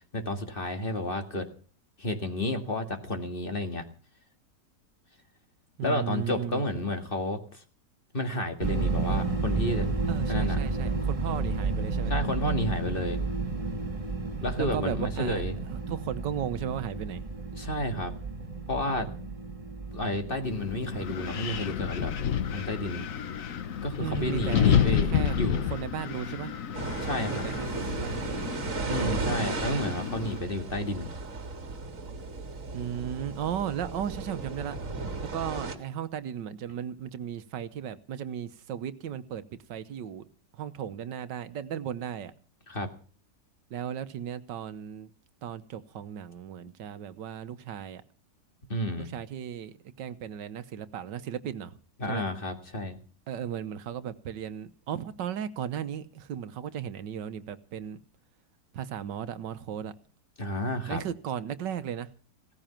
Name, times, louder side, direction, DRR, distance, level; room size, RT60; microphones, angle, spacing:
voice 1, 0.1-1.5 2.0-3.8 5.8-7.6 8.1-9.9 10.3-10.6 12.1-13.2 14.4-15.6 17.5-18.1 18.7-19.4 19.9-22.1 22.5-23.1 23.8-25.1 25.3-25.7 27.0-27.4 27.8-28.0 28.9-31.1 42.7-42.9 48.7-49.1 52.0-53.0 60.4-61.0, left 1 dB, 30° left, 2.1 m, -31 dB
voice 2, 5.8-6.6 10.1-12.1 14.6-15.4 15.7-17.2 24.0-26.5 27.3-28.6 32.7-34.8 35.3-39.4 39.7-40.3 40.5-42.3 43.7-45.1 45.4-48.0 49.0-51.8 52.1-52.2 53.3-58.0 58.7-59.9 60.9-62.1, right 9 dB, 85° right, 1.6 m, -35 dB
sound 1, 8.6-22.6, right 3 dB, 20° right, 1.5 m, -32 dB
Wind, 20.4-30.4, left 8 dB, 55° left, 1.3 m, -30 dB
sound 2, 26.7-35.8, right 3 dB, 50° right, 2.1 m, -35 dB
17.0 x 14.0 x 5.8 m
omnidirectional pair, 1.9 m